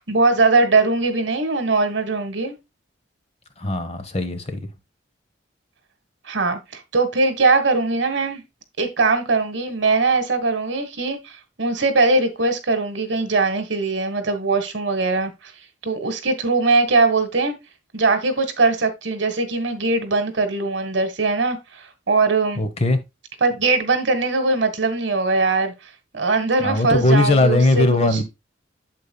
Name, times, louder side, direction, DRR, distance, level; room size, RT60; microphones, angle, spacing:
voice 1, 0.0-2.5 6.3-8.4 8.8-11.3 11.6-15.3 15.8-17.6 17.9-22.6 23.4-25.7 26.1-27.8, right 3 dB, 65° right, 1.6 m, -20 dB
voice 2, 3.6-4.6 22.6-23.0 26.6-28.2, left 2 dB, 35° left, 1.0 m, -19 dB
8.4 x 7.4 x 2.3 m
head